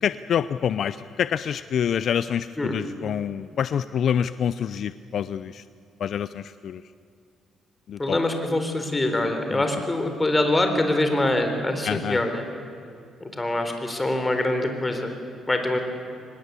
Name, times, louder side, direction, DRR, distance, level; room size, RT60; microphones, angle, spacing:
voice 1, 0.0-5.6 6.0-6.8 7.9-8.2 9.5-9.6 11.8-12.2, left 8 dB, 65° left, 14 dB, 0.5 m, -26 dB
voice 2, 8.0-12.4 13.2-15.1 15.5-15.8, left 1 dB, 20° left, 6 dB, 4.0 m, -24 dB
24.5 x 20.5 x 8.4 m, 2.4 s
cardioid pair, 90°, 0 cm